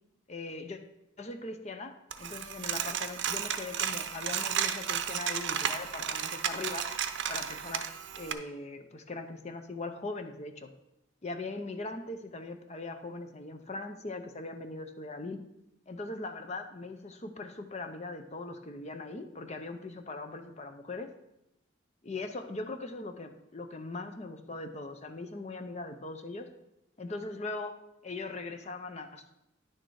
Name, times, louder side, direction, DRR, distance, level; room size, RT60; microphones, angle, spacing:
voice 1, 0.3-0.8 1.2-6.8 7.3-7.9 8.1-10.7 11.2-15.4 15.9-21.1 22.0-26.5 27.0-29.3, left 2 dB, 30° left, 7 dB, 0.6 m, -40 dB
Coin (dropping), 2.1-8.3, right 8 dB, 55° right, 0.6 m, -33 dB
10.0 x 6.5 x 4.7 m, 0.85 s
head